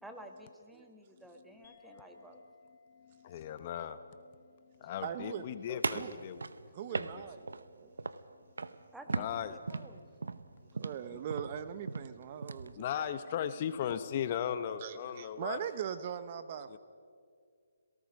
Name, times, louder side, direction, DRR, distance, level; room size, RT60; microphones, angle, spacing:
voice 1, 0.0-2.4 5.7-6.3 8.9-10.0 12.9-13.1, right 1 dB, 5° right, 4 dB, 1.3 m, -52 dB
sound 1, 1.6-6.5, left 3 dB, 55° left, 4.4 m, -64 dB
voice 2, 3.0-4.0 4.8-6.4 6.9-7.2 9.2-9.6 11.1-11.2 12.8-15.6 16.7-16.8, left 9 dB, 35° left, 12 dB, 0.8 m, -37 dB
voice 3, 5.0-5.5 5.9-6.1 6.7-7.9 10.8-12.9 14.8-16.8, right 9 dB, 35° right, 12 dB, 0.7 m, -40 dB
sound 2, 5.8-7.7 8.0-8.3 8.6-8.8 9.1-12.7, right 4 dB, 80° right, 0.9 m, -38 dB
27.0 x 18.5 x 5.3 m, 2.1 s
hypercardioid pair, 160°, 0 cm